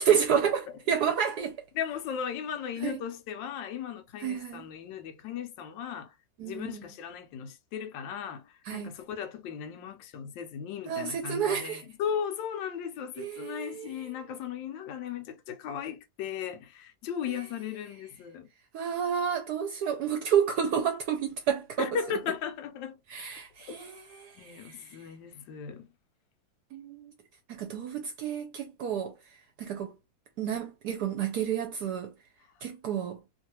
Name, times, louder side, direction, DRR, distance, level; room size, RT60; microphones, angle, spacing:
voice 1, 0.0-1.5 2.8-3.0 4.2-4.6 6.4-6.8 8.7-8.9 10.9-11.8 13.2-14.1 18.7-22.0 23.1-24.8 26.7-27.1 27.5-29.1 29.6-29.9 30.4-32.1 32.6-33.2, right 8 dB, 70° right, 1.0 m, -30 dB
voice 2, 1.0-1.4 1.7-18.5 21.8-23.0 23.6-23.8 24.4-25.9, left 8 dB, 90° left, 1.3 m, -37 dB
3.2 x 2.4 x 2.8 m
omnidirectional pair, 2.0 m